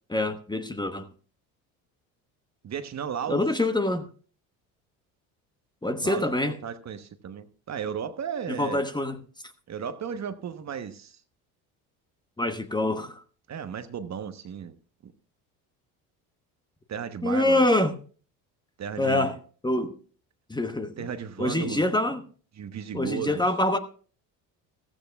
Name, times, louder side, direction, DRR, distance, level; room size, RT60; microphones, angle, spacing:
voice 1, 0.1-1.1 3.3-4.0 5.8-6.6 8.5-9.5 12.4-13.2 17.2-17.9 19.0-19.4 19.6-19.9 20.5-20.9 21.4-22.2 22.9-23.8, left 1 dB, 10° left, 1.0 m, -25 dB
voice 2, 2.6-3.4 6.0-8.9 9.7-11.2 13.5-14.8 15.0-15.1 16.9-17.6 18.8-19.3 21.0-21.8 22.6-23.4, right 7 dB, 40° right, 1.1 m, -34 dB
15.0 x 13.5 x 2.3 m
hypercardioid pair, 75°, 42 cm